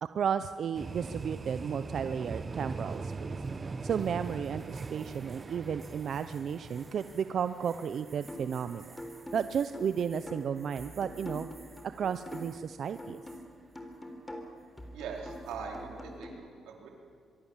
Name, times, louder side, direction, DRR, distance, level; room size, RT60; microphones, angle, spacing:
voice 1, 0.0-3.4 3.8-9.0 9.3-11.5 12.0-13.2, right 7 dB, 60° right, 11 dB, 0.7 m, -33 dB
sound 1, 0.7-12.6 12.9-13.4 15.3-15.6, right 4 dB, 30° right, 1.2 m, -42 dB
sound 2, 8.3-8.6 9.0-12.7 13.0-16.3, equal, 15° left, 3.8 m, -44 dB
voice 2, 14.9-16.9, right 5 dB, 90° right, 1 dB, 4.3 m, -41 dB
25.5 x 23.0 x 7.4 m, 2.4 s
cardioid pair, 90°, 0 cm